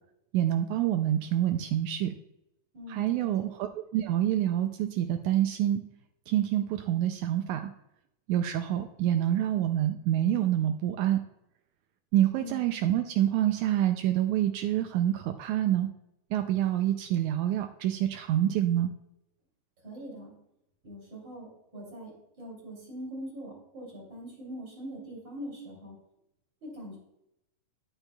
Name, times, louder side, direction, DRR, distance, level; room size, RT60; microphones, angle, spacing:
voice 1, 0.3-2.1 2.9-5.8 6.3-7.7 8.3-11.2 12.1-15.9 16.3-18.9, right 12 dB, 85° right, 7 dB, 1.7 m, -27 dB
voice 2, 2.7-3.3 12.3-12.6 19.8-20.3 20.8-26.0 26.6-27.0, equal, 35° right, -3 dB, 3.5 m, -42 dB
10.5 x 8.8 x 2.3 m, 0.82 s
omnidirectional pair, 3.9 m